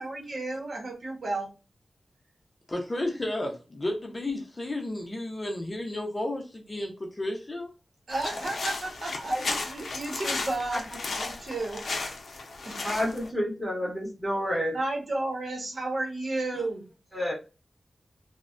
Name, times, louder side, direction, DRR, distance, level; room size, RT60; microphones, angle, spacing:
voice 1, 0.0-1.5 8.1-11.8 12.3-13.0 14.7-16.8, right 2 dB, 60° right, 0.9 m, -33 dB
voice 2, 2.7-7.7 16.5-16.6, left 1 dB, 30° left, 0.6 m, -32 dB
sound 1, 8.1-13.3, left 3 dB, 70° left, 0.5 m, -34 dB
voice 3, 12.8-14.8 17.1-17.3, equal, 5° right, 1.5 m, -29 dB
3.1 x 2.1 x 2.4 m
wide cardioid pair, 115°, 0 cm